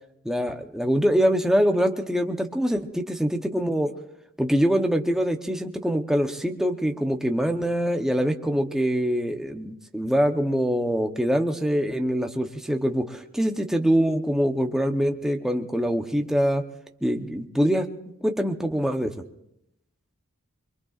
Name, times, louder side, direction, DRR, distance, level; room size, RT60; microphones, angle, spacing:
voice 1, 0.2-3.9 4.4-16.6 17.0-17.9 18.2-19.1, equal, ahead, 3 dB, 0.8 m, -24 dB
25.0 x 23.0 x 2.5 m, 0.82 s
head